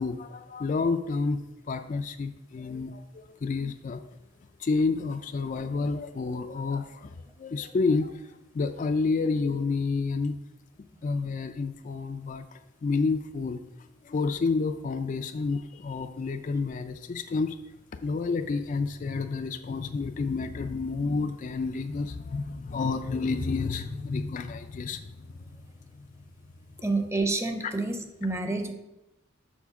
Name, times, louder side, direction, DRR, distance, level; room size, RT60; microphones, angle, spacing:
voice 1, 0.0-4.0 4.6-10.4 11.0-13.6 14.0-17.6 18.0-25.5 25.9-26.1 27.6-27.7, left 4 dB, 40° left, 8 dB, 0.3 m, -30 dB
voice 2, 26.8-28.7, right 2 dB, 15° right, 6 dB, 0.7 m, -28 dB
7.2 x 4.3 x 5.8 m, 0.93 s
head